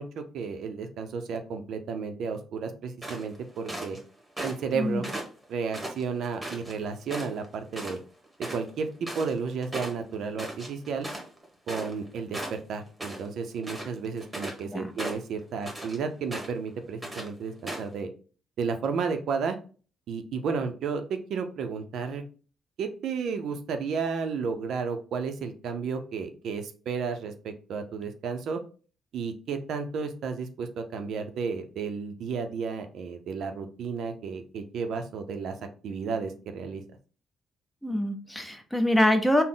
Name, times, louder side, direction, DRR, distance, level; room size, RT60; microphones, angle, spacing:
voice 1, 0.0-4.0 4.4-5.1 5.5-8.0 8.4-11.1 11.7-18.1 18.6-19.6 20.1-22.2 22.8-28.6 29.1-35.5 35.8-36.8, right 5 dB, 70° right, 7 dB, 0.5 m, -32 dB
sound 1, 3.0-4.0 4.4-4.7 5.0-6.7 7.1-7.5 7.7-8.0 8.2-12.1 12.3-13.3 13.6-14.6 15.0-16.0 16.3-16.7 17.0-17.3 17.7-17.9, right 1 dB, 15° right, 1.2 m, -37 dB
voice 2, 37.8-39.4, left 1 dB, 5° left, 6 dB, 0.6 m, -24 dB
3.9 x 2.0 x 3.7 m, 0.38 s
cardioid pair, 90°, 0 cm